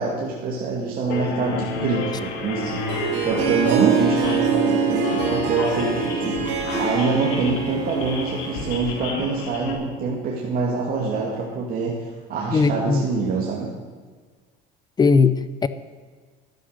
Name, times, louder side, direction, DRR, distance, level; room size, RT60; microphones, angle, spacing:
voice 1, 0.0-3.0 3.2-13.7, right 4 dB, 50° right, -3 dB, 2.4 m, -25 dB
sound 1, 1.1-9.7, left 4 dB, 75° left, 2.2 m, -31 dB
Harp, 2.6-9.1, right 6 dB, 70° right, 3.3 m, -24 dB
voice 2, 12.5-13.0 15.0-15.7, left 4 dB, 20° left, 14 dB, 0.6 m, -18 dB
12.5 x 9.6 x 6.6 m, 1.5 s
cardioid pair, 115°, 19 cm